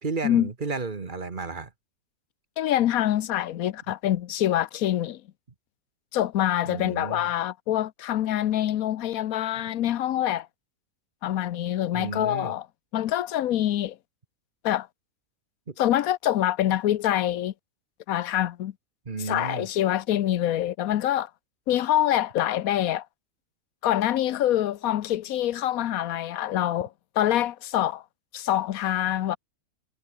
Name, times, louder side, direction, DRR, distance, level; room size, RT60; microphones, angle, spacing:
voice 1, 0.0-1.7 6.7-7.3 11.9-12.6 15.7-15.8 19.0-19.7, right 4 dB, 30° right, 1.5 m, -33 dB
voice 2, 2.6-5.2 6.1-10.5 11.2-12.7 12.9-14.0 14.6-14.9 15.8-17.5 18.1-18.7 19.2-21.3 21.7-23.0 23.8-26.9 27.2-28.0 28.3-29.4, left 12 dB, 65° left, 1.1 m, -25 dB
omnidirectional pair, 1.7 m